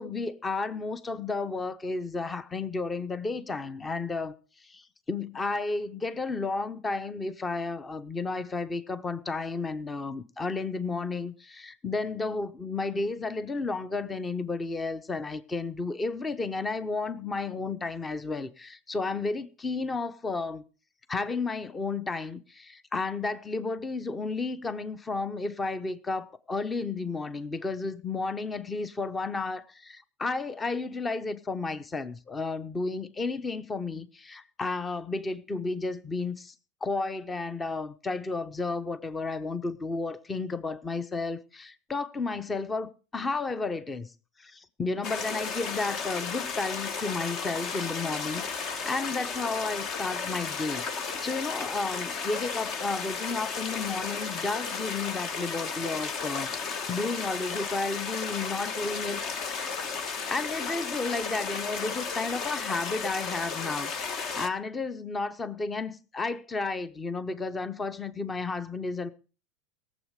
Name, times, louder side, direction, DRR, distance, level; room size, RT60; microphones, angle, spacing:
voice 1, 0.0-20.6 21.1-36.5 36.8-44.1 44.4-59.7 60.3-69.1, left 3 dB, 15° left, 0.9 m, -32 dB
sound 1, 45.0-64.5, left 5 dB, 40° left, 1.3 m, -34 dB
17.0 x 7.4 x 6.6 m
supercardioid pair, 125°, 0 cm